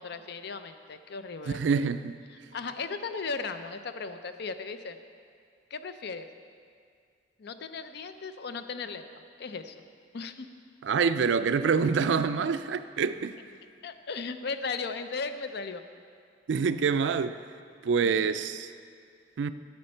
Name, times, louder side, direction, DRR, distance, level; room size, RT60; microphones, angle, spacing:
voice 1, 0.0-1.6 2.5-5.0 5.7-6.3 7.4-9.8 10.1-10.5 13.8-15.8 18.0-18.1, left 4 dB, 65° left, 10 dB, 0.5 m, -36 dB
voice 2, 1.5-2.2 10.8-13.4 16.5-17.3 17.8-18.7 19.4-19.5, right 5 dB, 80° right, 12 dB, 0.4 m, -26 dB
10.5 x 8.5 x 4.4 m, 2.2 s
head